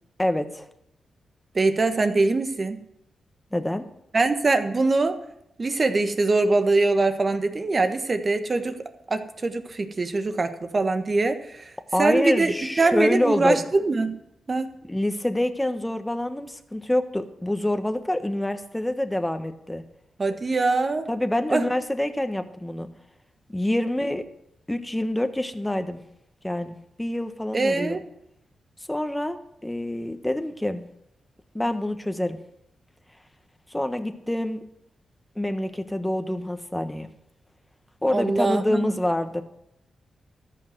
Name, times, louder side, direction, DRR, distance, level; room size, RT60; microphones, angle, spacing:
voice 1, 0.2-0.7 3.5-3.8 11.9-13.6 14.9-19.8 21.1-22.9 23.5-24.2 24.7-26.0 26.4-28.0 28.9-30.8 31.5-32.4 33.7-34.6 35.4-37.1 38.0-39.4, left 1 dB, 10° left, 8 dB, 1.4 m, -26 dB
voice 2, 1.5-2.8 4.1-5.2 5.6-8.8 9.1-11.7 12.0-14.2 14.5-14.8 20.2-21.1 21.5-21.6 27.5-28.0 38.1-38.9, right 3 dB, 45° right, 8 dB, 1.4 m, -23 dB
14.0 x 5.8 x 8.0 m, 0.78 s
supercardioid pair, 45°, 0 cm